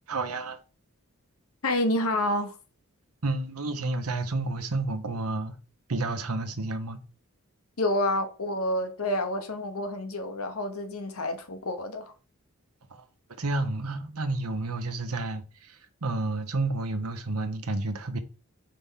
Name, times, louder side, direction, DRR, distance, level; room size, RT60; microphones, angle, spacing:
voice 1, 0.1-0.6 3.2-5.5 5.9-7.0 13.4-18.2, right 2 dB, 90° right, 1.0 m, -30 dB
voice 2, 1.6-2.6 7.8-12.1, left 1 dB, 80° left, 1.1 m, -28 dB
5.2 x 3.4 x 5.7 m
head